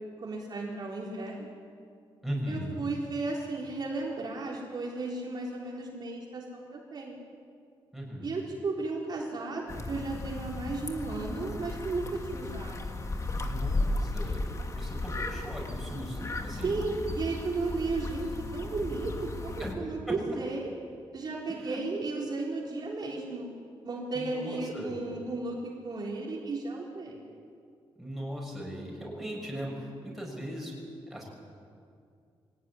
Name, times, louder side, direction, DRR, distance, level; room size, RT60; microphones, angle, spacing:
voice 1, 0.2-1.5 2.5-7.2 8.2-13.1 16.6-19.1 19.4-20.7 21.1-23.5 23.8-27.2, right 3 dB, 45° right, -3 dB, 3.9 m, -34 dB
voice 2, 2.2-2.9 7.9-8.3 13.4-14.4 14.7-16.7 19.6-19.8 21.7-21.8 24.1-24.9 28.0-30.7 31.1-31.3, equal, ahead, -3 dB, 6.9 m, -38 dB
sound 1, 9.7-19.7, left 2 dB, 30° left, 1.8 m, -35 dB
24.0 x 17.5 x 10.0 m, 2.3 s
wide cardioid pair, 135°, 10 cm